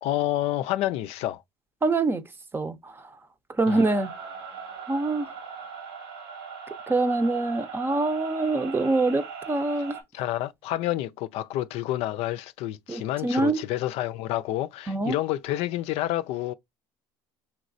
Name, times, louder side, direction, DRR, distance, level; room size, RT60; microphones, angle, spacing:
voice 1, 0.0-1.4 3.7-3.9 10.1-16.5, left 14 dB, 65° left, 0.4 m, -29 dB
voice 2, 1.8-2.2 2.5-3.0 3.6-4.1 4.9-5.3 6.9-10.0 12.9-13.6 14.9-15.2, right 2 dB, 20° right, 0.7 m, -25 dB
sound 1, 3.6-10.0, right 6 dB, 90° right, 2.2 m, -39 dB
5.7 x 3.1 x 2.6 m
supercardioid pair, 85°, 11 cm